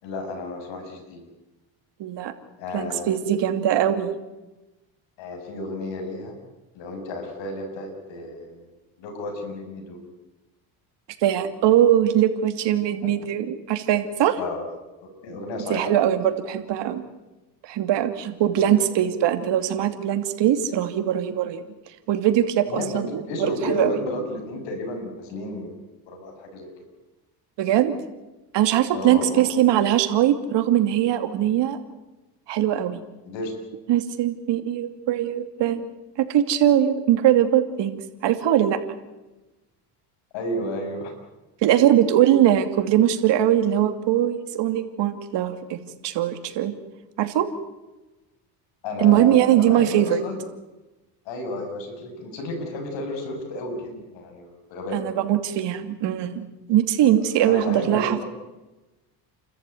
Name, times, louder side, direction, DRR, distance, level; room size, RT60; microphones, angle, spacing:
voice 1, 0.0-1.3 2.6-3.2 5.2-6.4 6.8-8.7 9.0-10.1 13.0-13.1 14.4-14.7 15.2-15.9 18.5-18.8 22.6-25.8 26.1-26.7 28.9-29.5 33.3-33.5 40.3-41.1 48.8-50.4 51.3-55.0 57.1-58.3, left 2 dB, 75° left, 4 dB, 7.4 m, -32 dB
voice 2, 2.0-2.3 2.7-4.2 11.2-14.4 15.7-17.0 17.6-21.6 22.1-23.9 27.6-27.9 28.5-31.8 32.5-33.0 33.9-35.9 36.2-38.8 41.6-46.7 47.2-47.5 49.0-50.2 54.9-56.4 56.7-58.2, right 11 dB, 65° right, 8 dB, 2.8 m, -21 dB
29.5 x 14.0 x 9.4 m, 1.1 s
cardioid pair, 100°, 45 cm